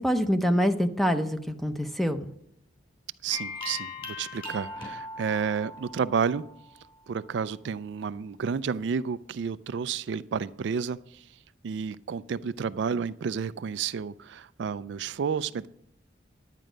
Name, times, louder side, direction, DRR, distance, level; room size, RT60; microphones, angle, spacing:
voice 1, 0.0-2.3, equal, ahead, 9 dB, 0.6 m, -25 dB
voice 2, 3.2-6.4 7.1-11.2 11.6-15.7, right 6 dB, 65° right, 15 dB, 0.3 m, -31 dB
sound 1, 3.3-6.8, left 3 dB, 25° left, 3.1 m, -39 dB
11.0 x 9.1 x 5.1 m, 0.73 s
head